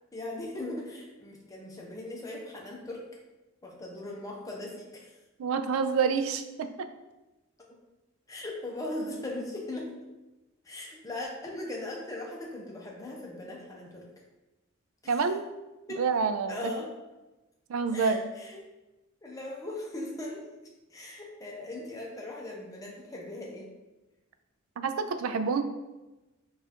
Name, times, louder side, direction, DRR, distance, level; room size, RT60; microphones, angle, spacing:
voice 1, 0.1-3.0 3.6-5.2 7.6-7.8 8.3-9.9 10.6-14.1 15.0-15.1 15.9-16.0 16.5-16.9 17.9-18.6 19.2-20.5 20.9-23.7, left 1 dB, 15° left, -2 dB, 0.6 m, -39 dB
voice 2, 5.4-6.9 15.1-15.5 16.0-16.7 17.7-18.3 24.8-25.6, right 5 dB, 80° right, 9 dB, 0.3 m, -28 dB
3.6 x 2.4 x 4.2 m, 1.1 s
head